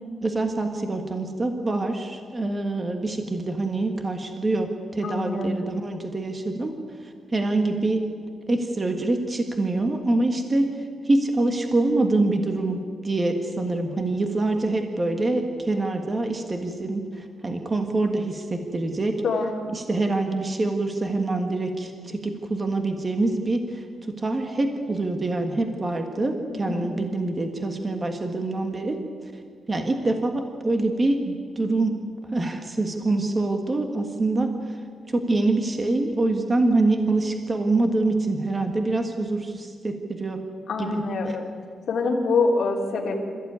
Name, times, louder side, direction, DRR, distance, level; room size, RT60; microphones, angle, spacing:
voice 1, 0.2-6.7 7.0-8.0 8.5-19.2 19.7-29.0 29.7-32.0 32.3-34.8 35.1-40.4 40.8-41.4, right 2 dB, 20° right, 5 dB, 1.7 m, -25 dB
voice 2, 5.0-5.6 19.2-19.7 26.5-27.0 40.7-41.5 41.9-43.2, left 3 dB, 50° left, -4 dB, 3.2 m, -25 dB
26.5 x 15.0 x 9.6 m, 2.1 s
wide cardioid pair, 175°, 0 cm